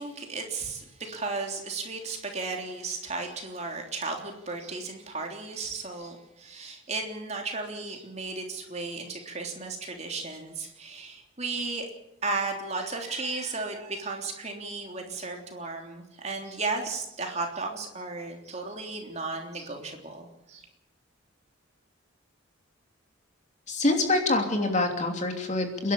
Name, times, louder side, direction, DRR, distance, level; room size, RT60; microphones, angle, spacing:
voice 1, 0.0-11.9 12.2-20.7, right 3 dB, 35° right, 2 dB, 3.4 m, -34 dB
voice 2, 23.7-25.9, left 2 dB, 35° left, 4 dB, 3.0 m, -25 dB
29.5 x 11.5 x 8.6 m, 0.89 s
head